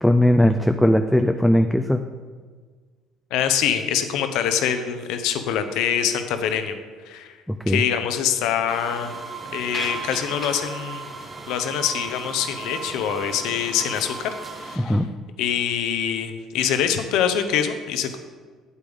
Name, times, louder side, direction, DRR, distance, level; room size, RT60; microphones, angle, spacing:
voice 1, 0.0-2.0 7.5-7.8 14.8-15.1, left 1 dB, 5° left, 7 dB, 0.3 m, -19 dB
voice 2, 3.3-6.8 7.1-7.3 7.7-9.3 9.5-11.1 11.5-14.3 14.6-15.0 15.4-18.2, left 8 dB, 80° left, 8 dB, 0.7 m, -24 dB
sound 1, 8.7-14.8, right 4 dB, 25° right, 1.1 m, -35 dB
8.4 x 8.3 x 3.5 m, 1.5 s
cardioid pair, 115°, 0 cm